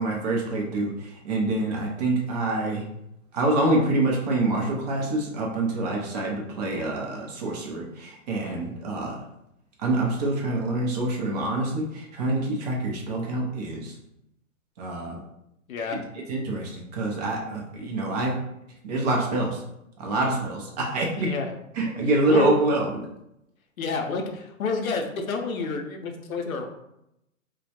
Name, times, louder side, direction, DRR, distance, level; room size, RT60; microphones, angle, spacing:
voice 1, 0.0-2.8 3.3-9.2 9.8-13.9 14.8-15.2 16.3-18.4 18.8-19.6 20.0-21.3 21.8-23.0, right 2 dB, 30° right, -1 dB, 0.5 m, -26 dB
voice 2, 8.4-8.8 15.7-16.1 20.2-20.4 21.2-21.5 22.3-22.5 23.8-26.7, left 4 dB, 90° left, 3 dB, 0.6 m, -29 dB
2.2 x 2.0 x 2.8 m, 0.83 s
hypercardioid pair, 125°, 41 cm